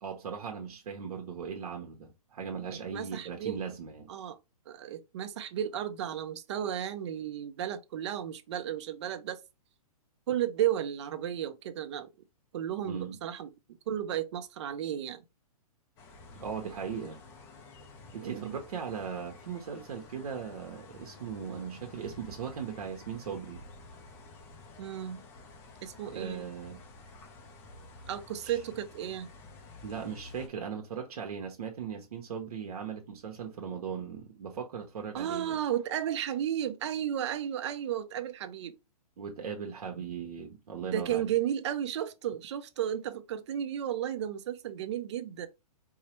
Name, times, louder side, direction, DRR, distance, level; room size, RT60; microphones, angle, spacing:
voice 1, 0.0-4.1 12.9-13.2 16.3-17.2 18.1-23.6 26.1-26.8 28.4-28.6 29.8-35.6 39.2-41.3, right 7 dB, 70° right, 1.0 m, -38 dB
voice 2, 2.9-3.6 4.1-4.4 4.7-9.4 10.3-12.1 12.5-13.5 13.9-15.2 18.2-18.6 24.8-25.2 25.8-26.5 28.1-29.3 35.1-38.8 40.8-45.5, right 10 dB, 45° right, 0.6 m, -33 dB
sound 1, 16.0-30.5, left 3 dB, 10° left, 0.4 m, -51 dB
4.6 x 2.1 x 2.9 m
hypercardioid pair, 160°, 20 cm